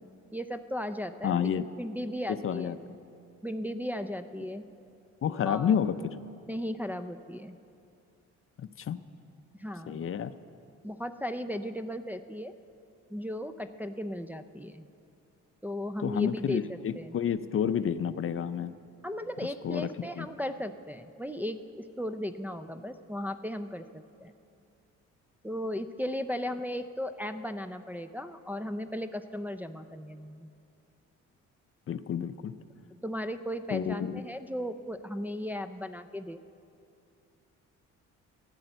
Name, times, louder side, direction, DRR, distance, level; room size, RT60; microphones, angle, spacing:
voice 1, 0.3-2.8 3.4-4.6 5.5-5.8 6.5-7.6 9.6-10.1 10.8-12.5 13.1-14.9 15.6-17.2 19.0-24.3 25.4-30.5 33.0-36.4, left 1 dB, 5° right, 6 dB, 0.4 m, -36 dB
voice 2, 1.2-1.6 2.4-2.8 5.2-6.0 8.6-9.0 9.9-10.3 16.0-18.7 19.6-19.9 20.2-20.3 31.9-32.5 33.7-34.2, left 8 dB, 45° left, 12 dB, 0.5 m, -29 dB
13.0 x 11.0 x 7.9 m, 2.6 s
cardioid pair, 90°, 30 cm